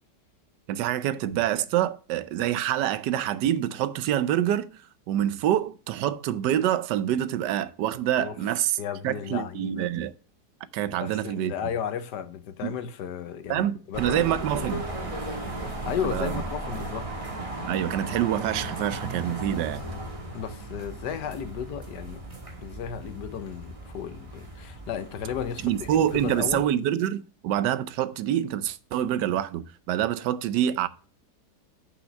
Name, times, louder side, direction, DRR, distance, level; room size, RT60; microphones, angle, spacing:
voice 1, 0.7-8.8 9.0-10.1 10.7-11.5 12.6-12.8 13.5-14.8 16.0-16.3 17.7-19.9 25.6-30.9, right 11 dB, 90° right, 1.3 m, -26 dB
voice 2, 8.8-9.9 11.0-14.8 15.8-17.1 20.3-22.2 22.6-26.7, left 8 dB, 80° left, 1.4 m, -34 dB
sound 1, 13.9-26.6, right 1 dB, 20° right, 1.6 m, -36 dB
7.1 x 5.8 x 6.3 m
omnidirectional pair, 1.8 m